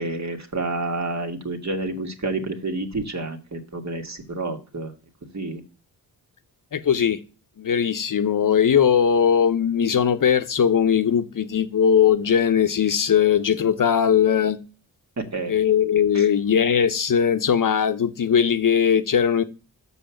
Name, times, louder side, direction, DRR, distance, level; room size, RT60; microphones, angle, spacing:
voice 1, 0.0-4.9 5.3-5.6 15.2-15.5 16.1-16.3, right 2 dB, 40° right, 2.0 m, -29 dB
voice 2, 6.7-7.2 7.6-14.6 15.5-19.4, left 8 dB, 50° left, 0.9 m, -19 dB
6.3 x 5.4 x 7.0 m
supercardioid pair, 50°, 42 cm